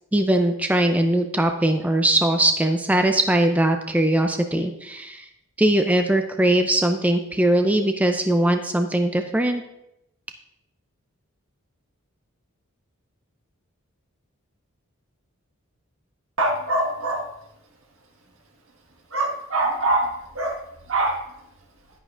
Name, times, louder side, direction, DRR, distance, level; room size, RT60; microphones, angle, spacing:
voice 1, 0.1-5.3 5.6-9.6, right 1 dB, 5° right, 5 dB, 0.4 m, -20 dB
voice 2, 16.4-17.2 19.1-20.1 20.4-20.5 20.9-21.2, right 2 dB, 75° right, 2 dB, 1.6 m, -23 dB
10.5 x 10.0 x 2.5 m, 0.85 s
head